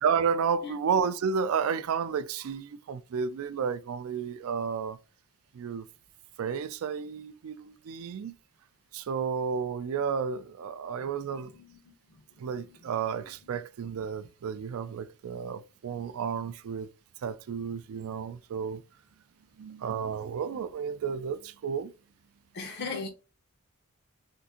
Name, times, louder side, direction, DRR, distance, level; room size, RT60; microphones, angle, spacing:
voice 1, 0.0-5.0 5.5-5.9 6.4-8.3 8.9-11.5 12.4-16.9 17.2-18.8 19.6-21.9, right 6 dB, 70° right, 0.3 m, -32 dB
voice 2, 11.3-11.8 22.5-23.1, left 4 dB, 50° left, 0.5 m, -37 dB
3.6 x 2.5 x 2.8 m
head